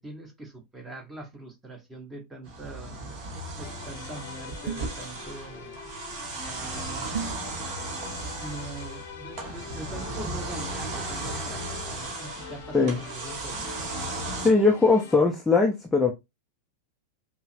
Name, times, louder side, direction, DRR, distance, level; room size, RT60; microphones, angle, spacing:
voice 1, 0.0-3.0 3.6-5.8 6.4-7.2 8.3-13.7, right 2 dB, 10° right, 1.2 m, -42 dB
sound 1, 2.4-14.5, right 2 dB, 40° right, 1.4 m, -36 dB
sound 2, 3.6-15.2, left 6 dB, 55° left, 0.7 m, -44 dB
sound 3, 4.7-5.1 7.1-7.5, right 7 dB, 60° right, 0.3 m, -33 dB
voice 2, 14.4-16.1, left 4 dB, 10° left, 0.5 m, -20 dB
5.4 x 2.0 x 2.5 m
figure-of-eight pair, 90°, 0 cm